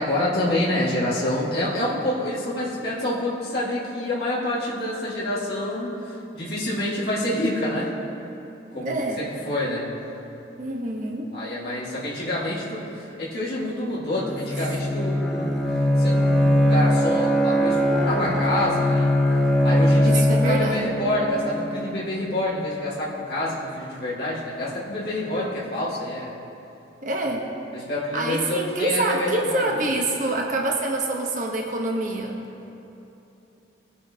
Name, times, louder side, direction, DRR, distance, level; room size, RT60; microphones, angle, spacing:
voice 1, 0.0-7.9 8.7-9.9 11.3-12.8 13.2-15.7 16.0-19.1 19.6-26.4 27.7-29.7, left 1 dB, 60° left, -7 dB, 2.0 m, -27 dB
voice 2, 8.7-9.2 10.6-11.3 20.0-20.8 27.0-27.5 28.1-32.4, right 2 dB, 45° right, 0 dB, 1.0 m, -26 dB
Bowed string instrument, 14.1-22.0, left 1 dB, ahead, 0.8 m, -21 dB
20.0 x 8.4 x 2.9 m, 2.9 s
head